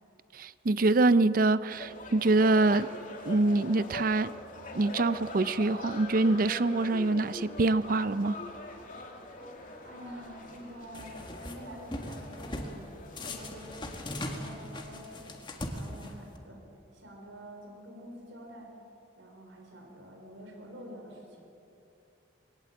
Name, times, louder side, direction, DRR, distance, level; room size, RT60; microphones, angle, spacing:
voice 1, 0.3-2.9 3.2-4.3 4.7-8.4, right 2 dB, 45° right, 16 dB, 0.5 m, -25 dB
sound 1, 1.7-14.5, left 2 dB, 45° left, 2.5 m, -43 dB
voice 2, 9.8-12.9 13.2-15.3 15.7-16.6 16.9-18.7 19.2-21.4, equal, 75° right, 2 dB, 3.9 m, -47 dB
sound 2, 10.9-11.6 11.9-12.7 13.2-16.4, left 1 dB, 25° left, 1.7 m, -39 dB
22.0 x 18.0 x 7.8 m, 2.9 s
head